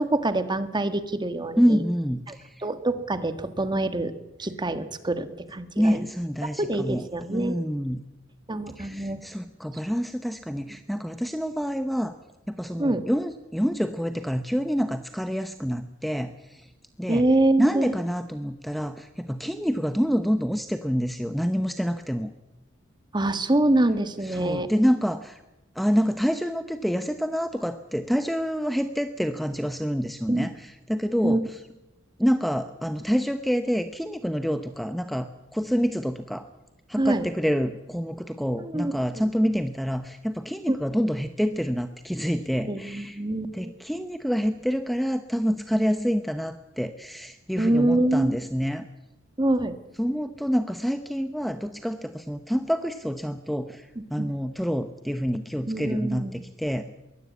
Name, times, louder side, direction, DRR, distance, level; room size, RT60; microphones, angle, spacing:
voice 1, 0.0-1.8 2.3-2.4 2.6-4.1 4.4-6.1 6.6-7.6 8.5-9.2 12.8-13.0 17.1-17.9 23.1-24.7 30.3-30.5 31.2-31.4 37.0-37.3 38.6-39.3 40.7-40.8 42.7-43.7 47.6-48.4 49.4-49.8 54.2-54.3 55.7-56.4, right 1 dB, 25° right, 10 dB, 1.5 m, -25 dB
voice 2, 1.6-2.6 5.8-7.0 7.3-8.0 8.7-12.1 12.5-16.7 17.0-17.2 17.6-22.3 24.2-25.4 25.7-31.6 32.2-36.5 36.9-43.2 43.5-48.9 50.0-56.9, equal, ahead, 9 dB, 0.8 m, -27 dB
22.5 x 17.0 x 8.3 m, 0.97 s
head